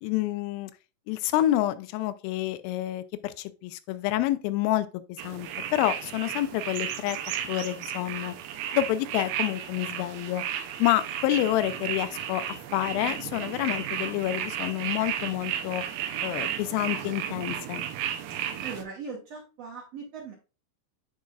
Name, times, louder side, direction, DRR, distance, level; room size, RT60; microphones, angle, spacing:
voice 1, 0.0-0.7 1.1-7.2 7.4-8.4 8.7-10.4 10.8-15.8 16.2-17.8, left 14 dB, 85° left, 2.4 m, -28 dB
sound 1, 5.2-18.8, right 10 dB, 85° right, 2.6 m, -34 dB
voice 2, 18.6-20.3, right 5 dB, 65° right, 1.7 m, -39 dB
9.3 x 4.9 x 2.4 m
omnidirectional pair, 4.2 m